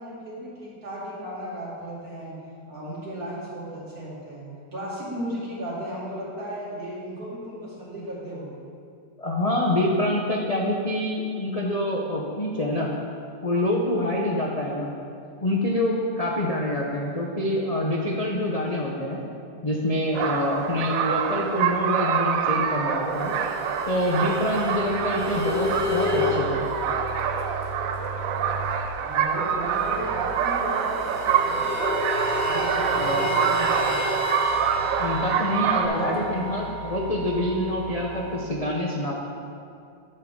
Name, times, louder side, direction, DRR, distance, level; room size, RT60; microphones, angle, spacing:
voice 1, 0.0-2.4 2.7-4.5 4.7-8.6 29.0-31.7 32.4-34.0 35.9-36.3, right 1 dB, 55° right, -8 dB, 2.9 m, -35 dB
voice 2, 9.2-12.9 13.4-14.9 15.4-19.2 19.6-23.3 23.9-26.6 32.9-33.2 35.0-39.1, left 1 dB, 40° left, -3 dB, 0.5 m, -26 dB
sound 1, 20.1-35.9, right 7 dB, 70° right, 0.8 m, -26 dB
sound 2, 23.1-28.9 29.2-29.3 29.5-38.4, left 1 dB, 10° left, 0.8 m, -31 dB
11.0 x 6.9 x 3.7 m, 2.5 s
omnidirectional pair, 1.9 m